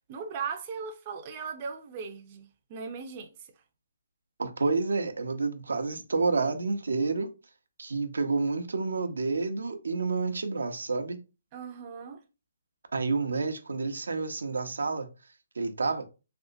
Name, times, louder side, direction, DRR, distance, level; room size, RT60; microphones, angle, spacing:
voice 1, 0.1-3.5 11.5-12.2, right 6 dB, 25° right, 0.5 m, -38 dB
voice 2, 4.4-7.3 7.8-11.2 12.9-15.1 15.6-16.1, right 3 dB, 90° right, 0.7 m, -29 dB
3.4 x 2.8 x 2.6 m
hypercardioid pair, 165°, 0 cm